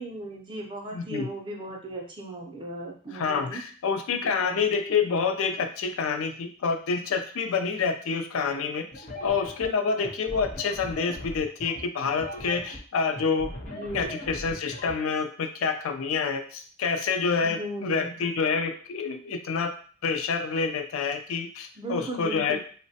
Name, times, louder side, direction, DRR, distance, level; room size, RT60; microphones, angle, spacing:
voice 1, 0.0-3.6 4.2-4.6 13.7-14.2 17.4-18.2 21.8-22.6, right 1 dB, 25° right, 1 dB, 0.4 m, -37 dB
voice 2, 0.9-1.3 3.1-19.7 20.0-22.6, left 5 dB, 90° left, 7 dB, 0.4 m, -28 dB
sound 1, 8.9-14.9, left 1 dB, 35° left, 0.5 m, -39 dB
3.0 x 2.1 x 2.7 m, 0.43 s
head